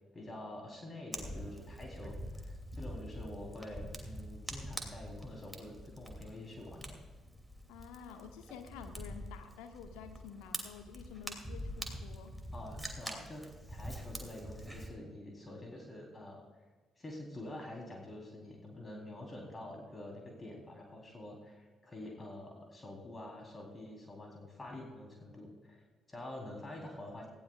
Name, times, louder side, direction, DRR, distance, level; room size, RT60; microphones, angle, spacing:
voice 1, 0.1-7.0 12.5-16.4 17.0-27.3, left 1 dB, 25° left, 0 dB, 3.7 m, -47 dB
Fire, 1.1-14.9, equal, 5° right, 2.8 m, -45 dB
voice 2, 7.7-12.3, left 7 dB, 65° left, 6 dB, 1.3 m, -50 dB
19.0 x 16.0 x 2.5 m, 1.3 s
figure-of-eight pair, 45°, 0 cm